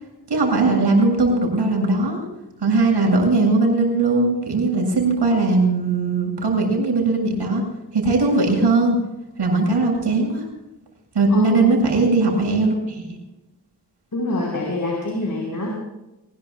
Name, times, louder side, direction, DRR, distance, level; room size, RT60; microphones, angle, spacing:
voice 1, 0.3-2.2 2.6-7.6 7.9-9.0 9.4-10.4 11.1-13.2, right 3 dB, 80° right, 1 dB, 7.6 m, -19 dB
voice 2, 11.3-11.7 14.1-15.7, left 1 dB, 50° left, -2 dB, 5.1 m, -25 dB
24.0 x 21.0 x 2.4 m, 0.97 s
wide cardioid pair, 85°, 40 cm